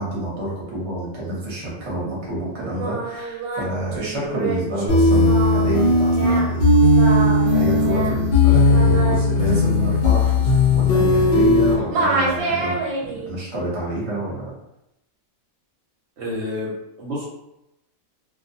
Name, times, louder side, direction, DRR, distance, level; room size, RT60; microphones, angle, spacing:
voice 1, 0.0-6.6 7.0-14.5, right 1 dB, 25° right, -5 dB, 0.7 m, -28 dB
Singing, 2.6-11.6 11.9-13.3, right 3 dB, 90° right, 1.1 m, -28 dB
sound 1, 4.9-11.7, left 2 dB, 60° left, 0.6 m, -17 dB
voice 2, 16.2-17.3, left 1 dB, 65° right, -5 dB, 0.8 m, -29 dB
2.4 x 2.2 x 2.6 m, 0.87 s
omnidirectional pair, 1.5 m